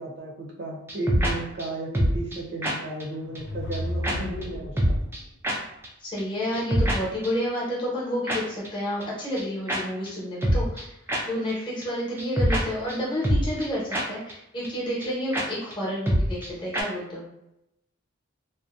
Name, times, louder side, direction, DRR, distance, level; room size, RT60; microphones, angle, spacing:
voice 1, 0.0-4.9, right 2 dB, 55° right, -2 dB, 0.6 m, -34 dB
sound 1, 0.9-1.3 1.6-1.7 1.9-2.4 2.6-2.7 3.0-3.1 3.3-3.4 3.7-3.8 4.0-4.2 4.4-4.5 4.8-5.2 5.4-5.6 5.8-5.9 6.2-6.3 6.5-7.0 7.2-7.3 8.3-8.4 8.6-8.7 9.0-9.1 9.4-9.5 9.7-9.8 10.1-10.2 10.4-10.8 11.1-11.2 11.5-11.6 11.8-11.9 12.2-12.6 12.9-13.0 13.2-13.7 13.9-14.0 14.3-14.4 14.6-14.7 15.0-15.1 15.3-15.4 15.7-15.8 16.1-16.5 16.7-16.8, equal, 10° right, 0.3 m, -24 dB
sound 2, 3.1-5.2, left 1 dB, 70° left, 0.4 m, -33 dB
voice 2, 6.0-10.9 11.2-17.3, equal, 20° left, -7 dB, 0.8 m, -30 dB
2.6 x 2.1 x 2.3 m, 0.85 s
head